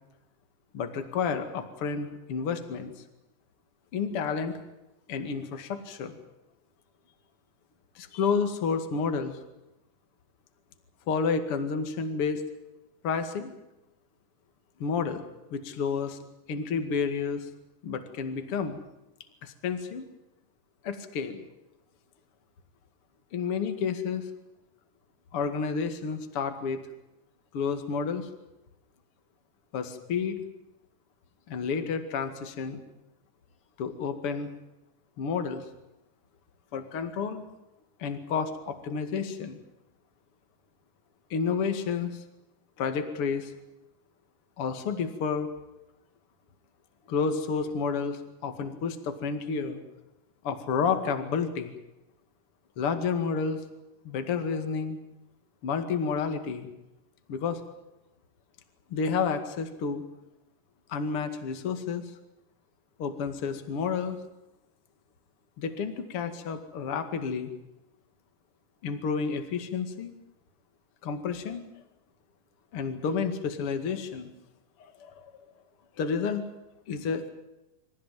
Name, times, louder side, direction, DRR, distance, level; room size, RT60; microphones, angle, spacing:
voice 1, 0.7-2.9 3.9-4.6 5.1-6.1 8.0-9.4 11.1-12.4 13.0-13.5 14.8-15.3 15.5-16.2 16.5-17.5 17.8-18.8 19.4-20.1 20.8-21.4 23.3-24.3 25.3-26.8 27.5-28.3 29.7-30.4 31.5-32.8 33.8-34.5 35.2-35.7 36.7-37.4 38.0-39.6 41.3-42.2 42.8-43.5 44.6-45.5 47.1-49.8 50.4-51.8 52.8-53.6 54.0-55.0 55.6-56.7 57.3-57.6 58.9-60.0 60.9-62.0 63.0-64.2 65.6-67.5 68.8-70.1 71.0-71.7 72.7-74.3 75.0-75.3 76.0-76.4 76.9-77.3, left 5 dB, 45° left, 8 dB, 2.7 m, -30 dB
27.0 x 15.0 x 9.3 m, 0.93 s
omnidirectional pair, 3.8 m